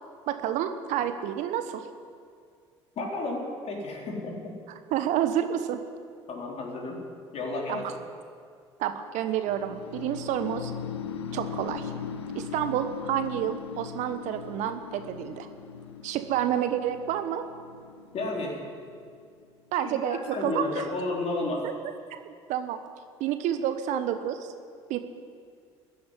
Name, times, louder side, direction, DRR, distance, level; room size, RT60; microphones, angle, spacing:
voice 1, 0.3-1.9 4.9-5.8 7.7-7.9 8.8-10.7 11.3-11.9 12.3-15.5 16.0-17.5 19.7-20.8 21.6-21.7 22.1-22.8 23.2-24.5 24.9-25.0, right 10 dB, 60° right, 9 dB, 1.1 m, -29 dB
voice 2, 3.0-4.5 6.3-7.0 7.3-7.8 18.1-18.6 19.7-21.6, left 2 dB, 50° left, 0 dB, 4.1 m, -32 dB
sound 1, 9.5-19.4, left 7 dB, 80° left, 0.8 m, -39 dB
14.0 x 10.0 x 10.0 m, 2.1 s
figure-of-eight pair, 55°, 14 cm